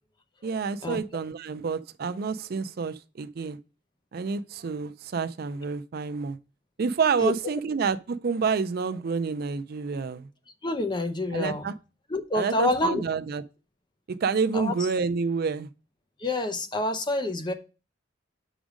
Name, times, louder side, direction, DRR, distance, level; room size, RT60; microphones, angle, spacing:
voice 1, 0.4-3.6 4.1-6.4 6.8-10.3 11.3-11.7 12.3-13.4 14.1-15.7, right 5 dB, 50° right, 0.4 m, -28 dB
voice 2, 10.6-11.7 12.1-13.0 14.5-14.7 16.2-17.5, left 1 dB, 25° left, 0.7 m, -27 dB
6.1 x 5.0 x 5.0 m
head